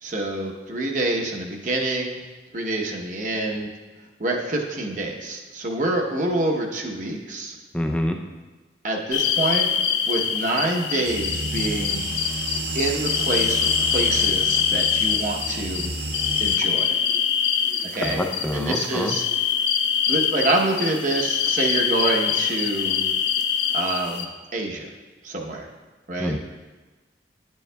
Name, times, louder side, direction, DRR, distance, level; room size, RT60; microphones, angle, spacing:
voice 1, 0.0-2.2 2.5-3.7 4.2-7.6 8.8-9.7 10.1-12.0 12.7-15.9 16.4-16.9 17.9-18.2 18.5-19.3 20.1-23.1 23.7-24.9 25.2-25.7 26.1-26.4, right 2 dB, 45° right, 1 dB, 0.9 m, -26 dB
voice 2, 7.7-8.2 18.0-19.1 26.2-26.4, left 1 dB, 5° left, 3 dB, 0.4 m, -26 dB
sound 1, 9.1-24.2, left 8 dB, 75° left, 0.6 m, -24 dB
sound 2, 11.0-16.6, right 3 dB, 60° right, 0.5 m, -31 dB
10.5 x 9.4 x 2.2 m, 1.3 s
head